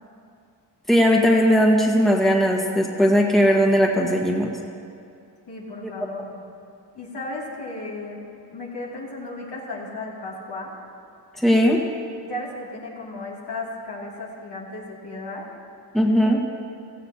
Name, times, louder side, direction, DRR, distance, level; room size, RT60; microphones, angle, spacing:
voice 1, 0.9-4.5 11.4-11.8 15.9-16.4, equal, ahead, -1 dB, 1.7 m, -18 dB
voice 2, 5.5-6.4 6.9-8.2 8.5-10.8 12.2-15.5, left 2 dB, 65° left, -5 dB, 3.0 m, -35 dB
15.5 x 15.0 x 3.0 m, 2.4 s
cardioid pair, 55°, 43 cm